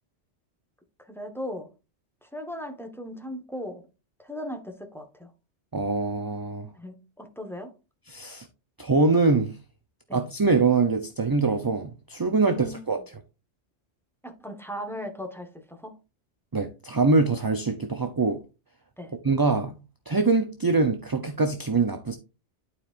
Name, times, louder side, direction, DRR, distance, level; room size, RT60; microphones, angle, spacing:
voice 1, 1.1-1.7 2.2-3.9 4.2-5.3 6.8-7.7 10.1-10.2 12.4-12.8 14.2-15.9 19.0-19.1, equal, ahead, 1.2 m, -37 dB
voice 2, 5.7-6.7 8.1-8.5 8.8-9.6 10.1-13.0 16.5-18.4 19.2-19.8 20.1-22.1, right 3 dB, 25° right, 0.5 m, -23 dB
12.0 x 4.7 x 2.5 m
omnidirectional pair, 1.2 m